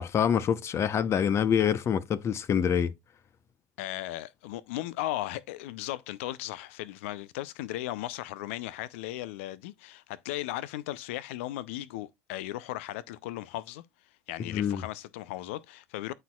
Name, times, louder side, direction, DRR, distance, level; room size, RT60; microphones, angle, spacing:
voice 1, 0.0-2.9 14.5-14.8, left 8 dB, 40° left, 0.8 m, -26 dB
voice 2, 3.8-13.8 14.3-16.1, left 15 dB, 70° left, 0.5 m, -36 dB
13.0 x 4.4 x 2.3 m
hypercardioid pair, 70°, 7 cm